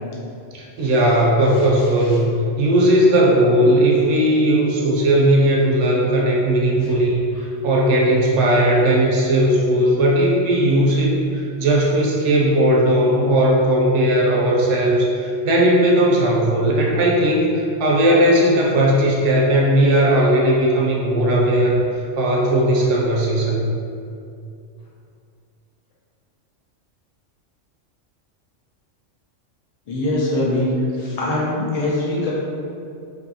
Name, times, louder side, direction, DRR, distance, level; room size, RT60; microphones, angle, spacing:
voice 1, 0.5-23.7, right 1 dB, 70° right, -2 dB, 0.9 m, -17 dB
voice 2, 29.9-30.7 31.0-32.3, left 1 dB, 50° left, -5 dB, 0.4 m, -23 dB
2.7 x 2.6 x 2.6 m, 2.5 s
omnidirectional pair, 1.3 m